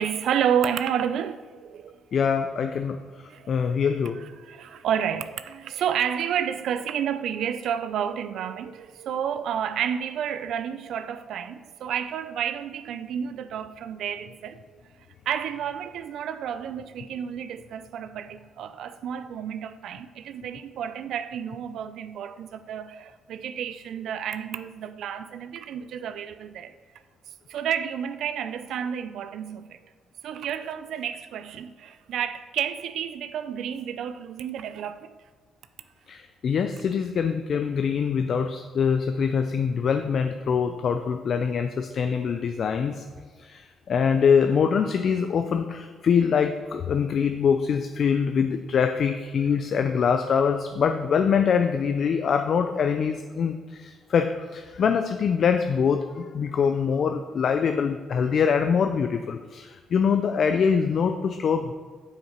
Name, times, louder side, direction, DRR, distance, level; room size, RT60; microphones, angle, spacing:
voice 1, 0.0-1.9 3.3-3.8 4.2-14.8 15.3-26.7 27.5-29.8 30.2-35.1, right 8 dB, 75° right, 0.4 m, -30 dB
voice 2, 2.1-3.0 3.5-4.2 36.1-43.0 43.4-61.7, left 6 dB, 55° left, 0.4 m, -24 dB
7.4 x 6.4 x 4.4 m
cardioid pair, 105°, 0 cm